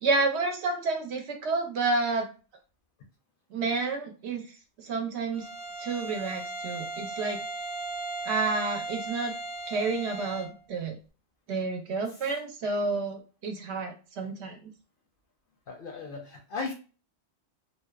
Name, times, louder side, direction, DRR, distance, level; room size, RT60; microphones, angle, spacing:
voice 1, 0.0-2.3 3.5-4.4 4.8-5.5 5.8-7.4 8.2-9.3 9.7-11.0 11.5-14.7, right 3 dB, 75° right, 5 dB, 0.8 m, -30 dB
Bowed string instrument, 5.3-10.6, right 2 dB, 30° right, 0.4 m, -37 dB
voice 2, 15.7-16.7, left 4 dB, 60° left, 3 dB, 0.6 m, -36 dB
2.7 x 2.0 x 2.2 m, 0.34 s
omnidirectional pair, 1.2 m